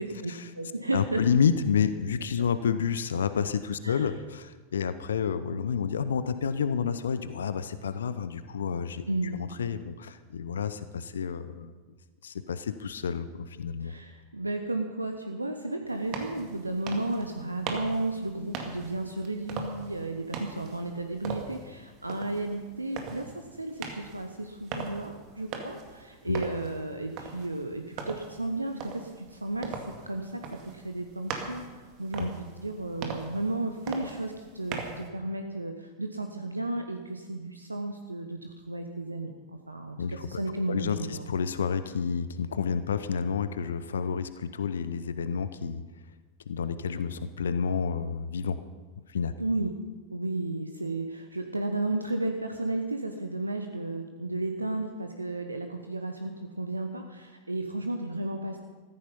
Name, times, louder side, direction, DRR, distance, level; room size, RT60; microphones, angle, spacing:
voice 1, 0.0-1.2 3.8-4.1 9.1-9.4 13.8-29.8 30.0-41.3 49.4-49.7 50.1-58.6, right 2 dB, 85° right, 5 dB, 0.9 m, -33 dB
voice 2, 0.9-9.0 9.4-11.8 12.2-13.9 26.3-26.4 32.2-32.3 40.0-40.4 40.7-45.8 46.5-48.6 49.1-49.3, left 6 dB, 65° left, 13 dB, 0.7 m, -29 dB
sound 1, 15.9-35.1, right 5 dB, 40° right, 2.1 m, -41 dB
15.0 x 14.0 x 5.4 m, 1.3 s
figure-of-eight pair, 90°, 0 cm